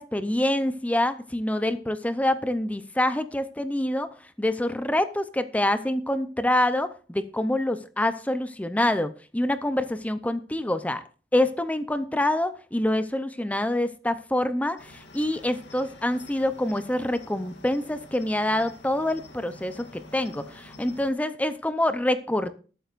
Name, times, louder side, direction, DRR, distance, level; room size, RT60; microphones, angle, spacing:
voice 1, 0.0-4.1 4.4-11.0 11.3-22.5, left 1 dB, 10° left, 11 dB, 0.6 m, -26 dB
Cricket, 14.8-21.1, left 2 dB, 85° left, 2.4 m, -48 dB
19.5 x 9.1 x 2.5 m, 0.38 s
head